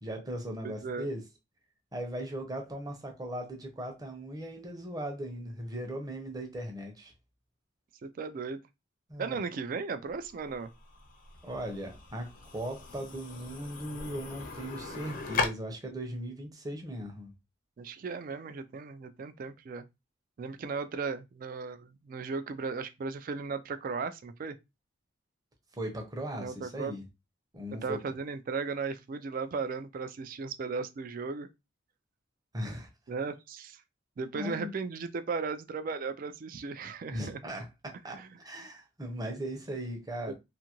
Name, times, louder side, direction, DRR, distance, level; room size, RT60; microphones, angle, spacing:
voice 1, 0.0-1.2 1.9-7.1 9.1-9.4 11.4-17.3 25.8-27.0 27.5-28.0 32.5-32.9 34.3-34.7 37.1-40.3, right 1 dB, 20° right, 0.7 m, -38 dB
voice 2, 0.6-1.1 8.0-8.6 9.2-10.7 17.8-19.8 20.4-24.6 26.3-26.9 27.8-31.5 33.1-33.8 34.2-37.4 38.1-38.3 40.3-40.4, right 4 dB, 45° right, 0.3 m, -36 dB
sound 1, 10.1-15.5, left 4 dB, 45° left, 0.5 m, -38 dB
2.6 x 2.5 x 2.9 m
head